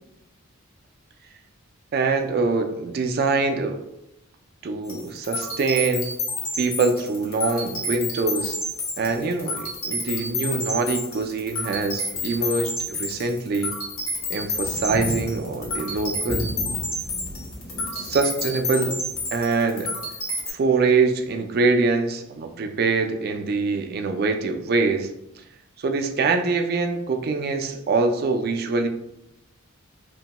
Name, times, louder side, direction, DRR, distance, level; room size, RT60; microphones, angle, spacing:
voice 1, 1.9-3.8 4.6-6.1 6.6-8.6 9.0-13.7 14.3-16.5 17.9-19.0 19.3-19.9 20.5-25.1 25.4-25.5 25.8-28.9, right 4 dB, 45° right, 5 dB, 0.3 m, -24 dB
sound 1, 4.9-20.5, left 1 dB, 75° left, 0.9 m, -30 dB
sound 2, 8.1-20.6 21.2-21.3, equal, 50° left, 0.5 m, -38 dB
2.9 x 2.2 x 2.8 m, 0.82 s
head